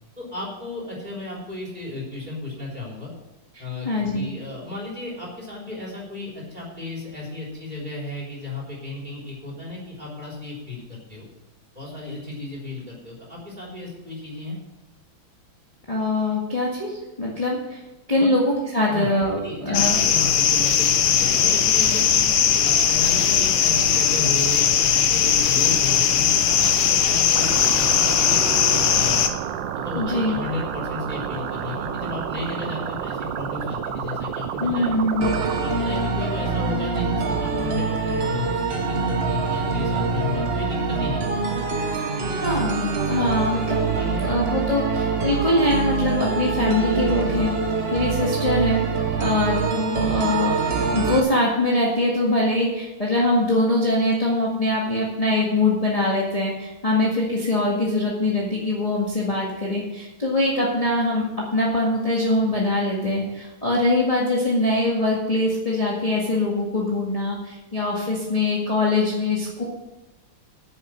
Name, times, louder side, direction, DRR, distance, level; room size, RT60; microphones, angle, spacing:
voice 1, 0.2-3.1 3.6-3.9 4.1-11.3 11.8-14.6 18.2-18.3 18.8-22.2 22.6-29.3 29.8-34.9 35.5-41.4 42.2-42.4 43.9-44.3 49.2-49.5, left 3 dB, 20° right, -4 dB, 3.9 m, -34 dB
voice 2, 3.5-4.3 15.9-17.8 18.1-20.0 30.0-30.4 34.6-35.4 42.3-48.8 49.2-50.6 50.9-61.2 61.5-69.6, left 2 dB, 20° left, -5 dB, 1.8 m, -23 dB
sound 1, 19.7-29.3, left 8 dB, 90° left, 1.7 m, -19 dB
sound 2, 27.3-35.6, right 9 dB, 70° right, 1.4 m, -30 dB
sound 3, 35.2-51.2, right 4 dB, 40° right, 1.0 m, -24 dB
9.4 x 7.3 x 7.4 m, 1.0 s
omnidirectional pair, 2.2 m